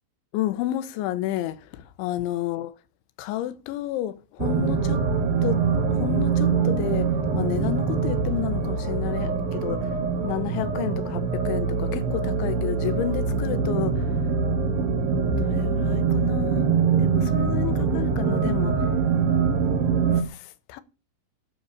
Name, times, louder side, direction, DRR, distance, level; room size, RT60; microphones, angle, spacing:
voice 1, 0.3-2.7 3.2-5.0 5.4-5.6 5.9-10.0 10.2-14.2 15.3-16.7 17.0-18.8 20.1-20.8, left 13 dB, 80° left, 3.3 m, -31 dB
sound 1, 4.4-20.2, right 5 dB, 60° right, 3.0 m, -24 dB
12.5 x 8.7 x 7.0 m
omnidirectional pair, 5.6 m